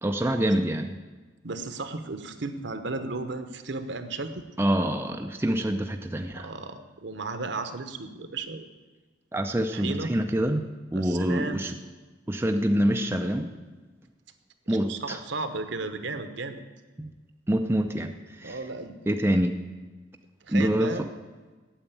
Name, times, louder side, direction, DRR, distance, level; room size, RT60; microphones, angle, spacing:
voice 1, 0.0-0.9 4.6-6.5 9.3-11.7 12.3-13.5 14.7-15.2 17.0-17.1 17.5-18.6 19.1-19.6 20.5-21.1, right 1 dB, 10° right, 5 dB, 0.5 m, -26 dB
voice 2, 1.4-4.5 6.4-8.6 9.7-10.1 10.9-11.6 14.7-16.6 18.4-19.0 20.5-21.0, right 3 dB, 65° right, 9 dB, 1.0 m, -34 dB
9.0 x 8.1 x 8.3 m, 1.3 s
head